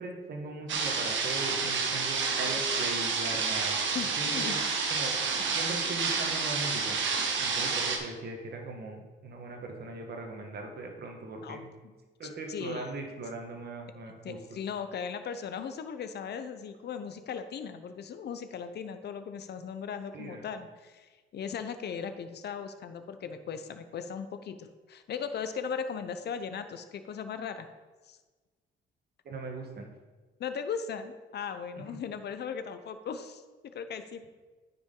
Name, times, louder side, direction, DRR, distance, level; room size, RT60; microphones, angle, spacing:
voice 1, 0.0-3.8 4.2-4.6 4.9-5.2 5.5-7.0 7.4-11.7 12.2-14.6 20.1-20.4 29.2-29.9, right 2 dB, 55° right, 2 dB, 1.5 m, -39 dB
sound 1, 0.7-8.0, right 5 dB, 70° right, 1.3 m, -29 dB
voice 2, 3.9-4.6 11.4-11.6 11.8-11.9 12.2-12.9 14.2-27.7 28.1-28.2 30.4-34.3, left 6 dB, 55° left, 10 dB, 0.7 m, -38 dB
9.6 x 5.9 x 3.9 m, 1.3 s
cardioid pair, 90°, 20 cm